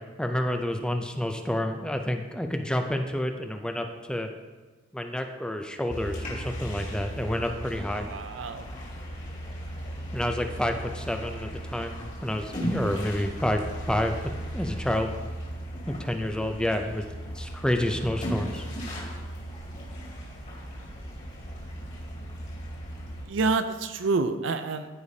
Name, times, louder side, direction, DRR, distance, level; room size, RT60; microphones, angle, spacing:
voice 1, 0.2-4.3 4.9-8.1 10.1-15.1 15.9-17.0 17.3-18.6, left 1 dB, 5° left, 5 dB, 0.4 m, -29 dB
sound 1, 5.9-23.2, equal, 40° left, 2.2 m, -36 dB
voice 2, 8.0-8.7 23.3-24.9, right 3 dB, 75° right, 10 dB, 0.5 m, -28 dB
14.5 x 4.9 x 2.7 m, 1.3 s
head